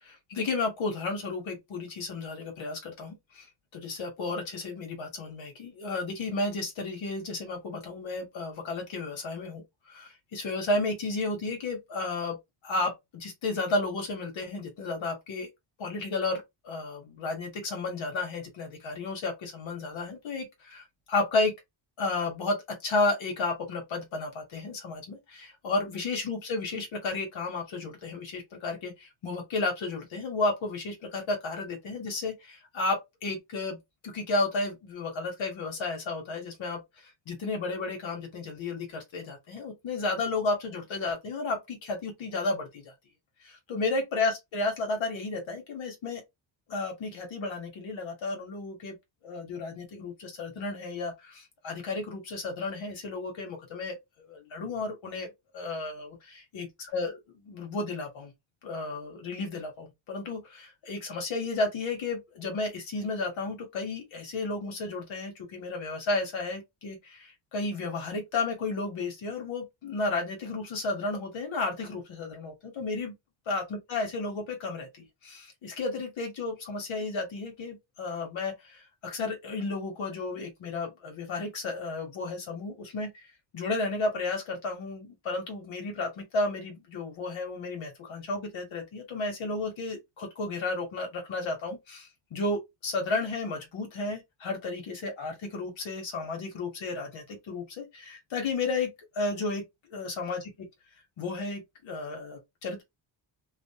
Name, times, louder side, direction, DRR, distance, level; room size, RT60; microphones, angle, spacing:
voice 1, 0.0-3.5 3.7-9.6 9.9-12.4 12.6-15.5 15.8-21.5 22.0-42.9 43.4-46.2 46.7-49.0 49.2-54.0 54.3-55.3 55.5-58.3 58.6-73.1 73.5-83.1 83.5-99.6 99.9-100.4 101.2-102.8, left 3 dB, 80° left, 1.0 m, -33 dB
2.5 x 2.0 x 2.7 m
cardioid pair, 100°, 46 cm